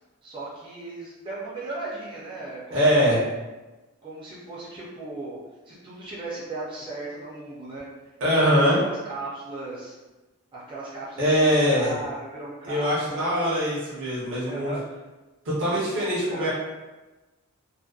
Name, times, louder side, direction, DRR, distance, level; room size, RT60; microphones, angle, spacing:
voice 1, 0.2-3.2 4.0-5.4 5.7-7.9 8.3-9.9 10.5-13.5 14.4-15.0 15.7-16.5, right 2 dB, 25° right, -7 dB, 0.4 m, -37 dB
voice 2, 2.7-3.2 8.2-8.8 11.2-11.9 12.6-14.7 15.5-16.5, equal, 60° right, -7 dB, 0.7 m, -22 dB
2.6 x 2.0 x 2.3 m, 1.1 s
head